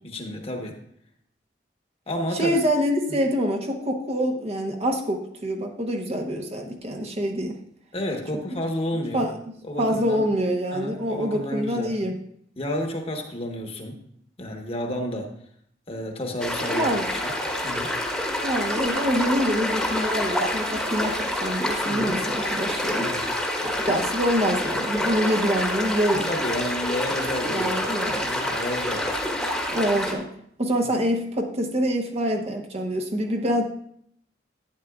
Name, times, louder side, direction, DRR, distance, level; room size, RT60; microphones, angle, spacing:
voice 1, 0.0-0.8 2.1-2.5 7.9-9.3 9.6-10.2 10.7-11.9 12.6-14.0 14.4-15.3 15.9-17.3 17.6-17.9 21.9-22.1 23.0-23.3 26.1-29.1, left 1 dB, 35° left, 3 dB, 1.2 m, -31 dB
voice 2, 2.3-7.6 8.5-8.6 9.1-9.5 9.8-12.2 16.7-17.1 18.4-23.1 23.6-26.3 27.5-28.3 29.7-30.3 30.6-33.6, equal, 35° right, 2 dB, 1.0 m, -26 dB
sound 1, 16.4-30.1, left 1 dB, 5° left, 1.3 m, -27 dB
11.5 x 9.1 x 2.4 m, 0.67 s
head